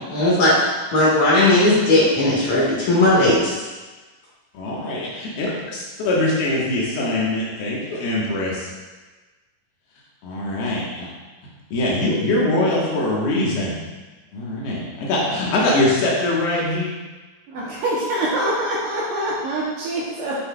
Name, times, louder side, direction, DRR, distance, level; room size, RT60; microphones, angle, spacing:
voice 1, 0.1-3.5, left 1 dB, 55° left, -7 dB, 2.6 m, -17 dB
voice 2, 4.5-8.7 10.2-11.1 11.7-13.8 14.3-16.9, left 1 dB, 80° left, -5 dB, 3.1 m, -22 dB
voice 3, 17.5-20.4, right 1 dB, 70° right, -6 dB, 2.2 m, -24 dB
7.9 x 6.3 x 2.3 m, 1.2 s
omnidirectional pair, 4.4 m